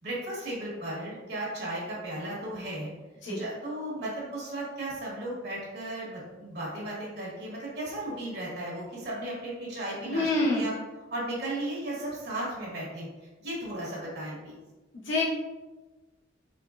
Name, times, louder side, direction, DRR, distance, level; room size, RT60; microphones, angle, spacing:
voice 1, 0.0-2.9 3.3-10.7 11.1-13.1 13.4-14.6, right 1 dB, 55° right, -5 dB, 1.2 m, -35 dB
voice 2, 10.1-10.6 15.1-15.2, left 2 dB, 75° left, -7 dB, 1.2 m, -26 dB
4.5 x 3.4 x 2.4 m, 1.2 s
head